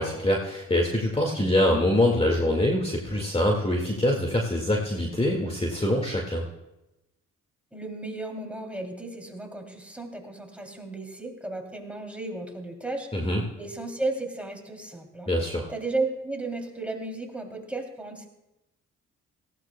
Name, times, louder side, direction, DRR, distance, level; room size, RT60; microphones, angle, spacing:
voice 1, 0.0-6.5 13.1-13.4 15.3-15.7, left 1 dB, 20° left, 0 dB, 1.9 m, -24 dB
voice 2, 7.7-13.3 13.5-15.3 15.7-18.3, right 2 dB, 5° right, 1 dB, 2.9 m, -34 dB
18.0 x 15.5 x 2.2 m, 0.95 s
supercardioid pair, 55°, 32 cm